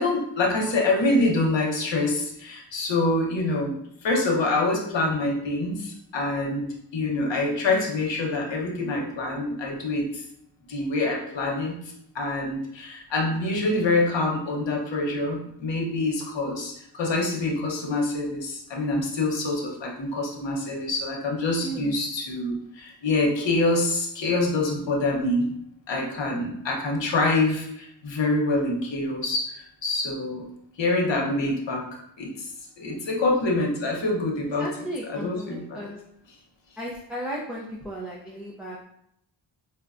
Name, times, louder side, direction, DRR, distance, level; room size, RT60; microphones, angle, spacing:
voice 1, 0.0-3.7 4.0-6.7 6.9-10.2 10.7-11.8 12.1-25.5 25.9-30.4 30.8-31.8 32.2-32.5 32.8-34.7 35.1-35.8, left 2 dB, 75° left, -1 dB, 0.9 m, -26 dB
voice 2, 21.6-22.0 34.5-36.0 36.8-38.8, right 1 dB, ahead, -6 dB, 0.4 m, -35 dB
4.6 x 2.2 x 2.4 m, 0.74 s
cardioid pair, 70°, 45 cm